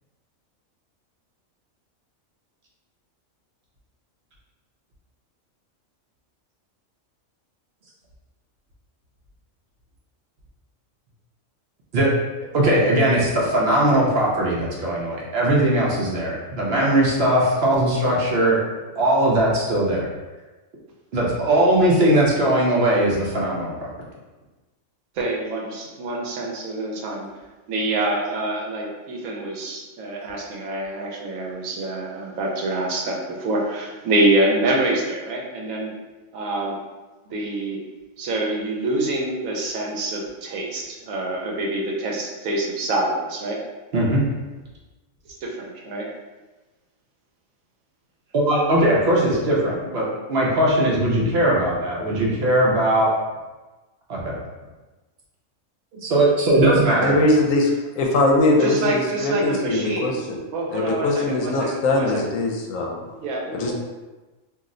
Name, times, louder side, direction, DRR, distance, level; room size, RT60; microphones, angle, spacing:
voice 1, 12.5-18.6 19.0-20.0 21.1-23.7 43.9-44.2 48.3-53.1 54.1-54.3 55.9-57.2, right 1 dB, 60° right, -4 dB, 0.7 m, -19 dB
voice 2, 25.2-27.3 27.7-35.9 36.3-36.8 37.3-37.8 38.2-43.6 45.3-46.1 58.6-60.1 60.5-62.2 63.2-63.7, right 2 dB, 80° right, -1 dB, 1.0 m, -26 dB
voice 3, 56.9-57.7 58.0-60.4 60.7-63.0 63.5-63.7, left 2 dB, 75° left, 0 dB, 1.0 m, -21 dB
2.6 x 2.0 x 3.6 m, 1.2 s
omnidirectional pair, 1.4 m